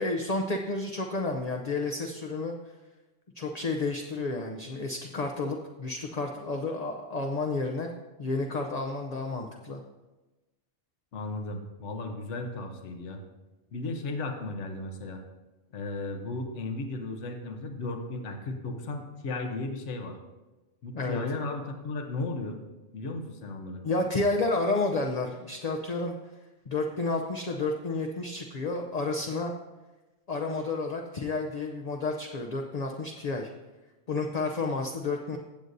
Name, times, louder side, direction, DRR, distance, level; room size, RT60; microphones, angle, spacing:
voice 1, 0.0-2.5 3.4-7.9 8.2-9.8 20.9-21.2 23.8-26.2 26.7-29.5 30.3-33.5 34.1-35.4, left 3 dB, 40° left, 2 dB, 0.7 m, -31 dB
voice 2, 11.1-13.2 13.7-15.2 15.7-20.2 20.8-22.6 22.9-23.8, left 2 dB, 75° left, 4 dB, 1.3 m, -35 dB
16.0 x 7.9 x 2.7 m, 1.1 s
omnidirectional pair, 1.2 m